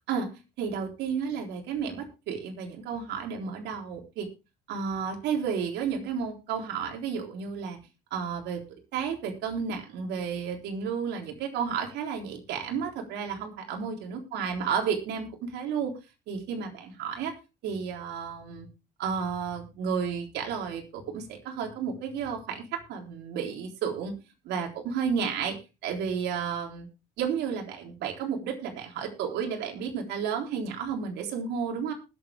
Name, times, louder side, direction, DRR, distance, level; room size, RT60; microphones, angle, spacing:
voice 1, 0.6-4.3 4.7-7.8 8.1-8.7 8.9-16.0 16.3-17.3 17.6-18.7 19.0-24.2 24.4-26.9 27.2-31.9, right 6 dB, 80° right, 3 dB, 3.8 m, -32 dB
20.0 x 7.7 x 3.5 m, 0.29 s
cardioid pair, 110°, 17 cm